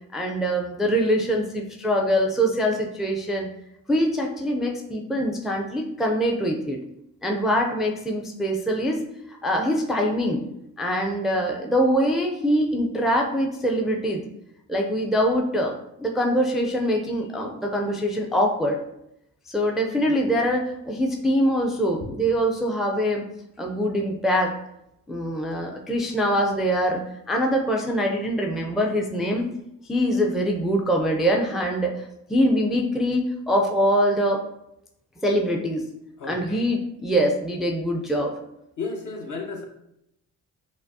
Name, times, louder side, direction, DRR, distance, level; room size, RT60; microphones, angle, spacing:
voice 1, 0.1-3.5 3.9-6.8 7.2-9.0 9.3-10.4 10.8-14.2 14.7-15.7 16.0-18.8 19.5-23.3 23.6-24.5 25.1-29.5 29.9-31.9 32.3-34.4 35.2-35.8 36.3-38.3, equal, ahead, 0 dB, 0.4 m, -23 dB
voice 2, 20.0-20.3 36.2-36.7 38.8-39.6, left 4 dB, 50° left, 2 dB, 0.9 m, -34 dB
4.9 x 2.0 x 2.7 m, 0.82 s
supercardioid pair, 60°, 38 cm